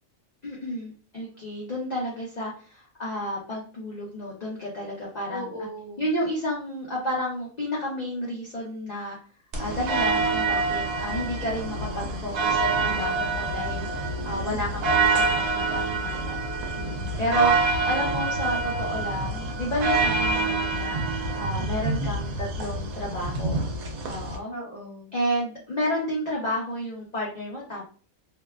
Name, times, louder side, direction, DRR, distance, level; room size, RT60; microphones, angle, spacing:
voice 1, 0.4-5.5 6.0-9.2 9.6-16.4 16.7-23.6 24.0-24.5 25.1-27.8, equal, 45° left, -5 dB, 0.5 m, -31 dB
voice 2, 5.3-6.0 14.2-14.9 24.5-25.1, equal, 15° right, -7 dB, 1.0 m, -39 dB
sound 1, 9.5-24.4, right 3 dB, 85° right, 1.1 m, -26 dB
2.7 x 2.2 x 2.2 m, 0.40 s
omnidirectional pair, 1.5 m